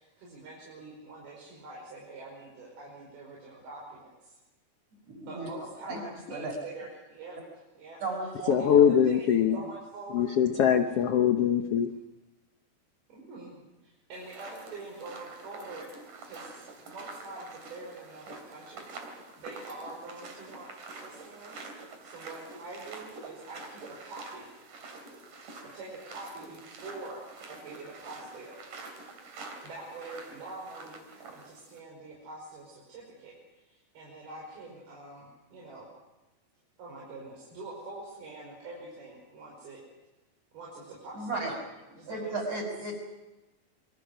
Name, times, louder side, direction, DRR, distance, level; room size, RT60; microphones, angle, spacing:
voice 1, 0.0-4.4 5.2-10.3 13.1-15.9 16.2-20.7 21.0-24.4 25.6-28.6 29.3-35.9 36.8-39.8 40.5-41.5 42.0-42.6, right 2 dB, 90° right, -4 dB, 7.5 m, -45 dB
voice 2, 5.1-5.5 5.9-6.0 6.3-6.5 8.0-8.7 9.5-9.6 41.1-41.5 42.0-42.9, right 3 dB, 40° right, -2 dB, 6.8 m, -34 dB
voice 3, 8.5-9.6 10.1-11.9, left 8 dB, 85° left, 6 dB, 1.3 m, -22 dB
sound 1, 14.1-31.8, right 3 dB, 55° right, 4.6 m, -47 dB
26.0 x 24.0 x 6.3 m, 1.1 s
omnidirectional pair, 4.3 m